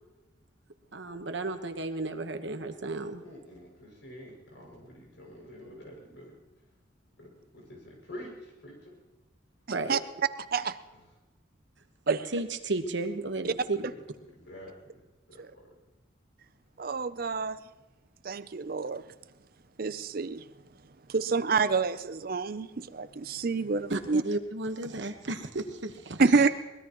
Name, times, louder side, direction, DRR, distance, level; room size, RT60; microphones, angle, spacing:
voice 1, 0.9-3.2 9.7-10.0 12.1-13.9 23.9-26.5, right 2 dB, 65° right, 7 dB, 1.2 m, -33 dB
voice 2, 3.2-6.4 7.2-8.9 13.8-14.0 14.3-15.0 15.3-15.7, equal, 65° left, -1 dB, 6.3 m, -47 dB
voice 3, 16.8-17.6 18.2-19.0 19.8-20.4 21.1-24.2 26.2-26.5, right 4 dB, 45° right, 13 dB, 0.5 m, -27 dB
23.5 x 19.5 x 3.0 m, 1.1 s
head